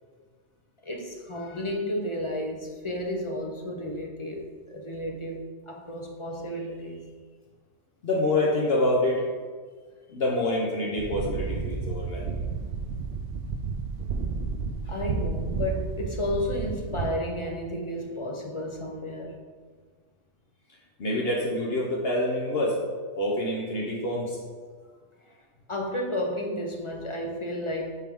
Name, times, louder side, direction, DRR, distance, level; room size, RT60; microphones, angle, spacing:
voice 1, 0.8-7.1 14.9-19.4 25.2-25.4 25.7-28.0, left 1 dB, 35° left, 1 dB, 0.6 m, -32 dB
voice 2, 8.0-9.3 10.1-12.5 21.0-22.8 23.2-24.4, left 1 dB, 60° left, -3 dB, 1.1 m, -26 dB
sound 1, 11.0-17.1, right 5 dB, 65° right, 0.7 m, -31 dB
8.2 x 3.8 x 3.6 m, 1.5 s
omnidirectional pair, 1.2 m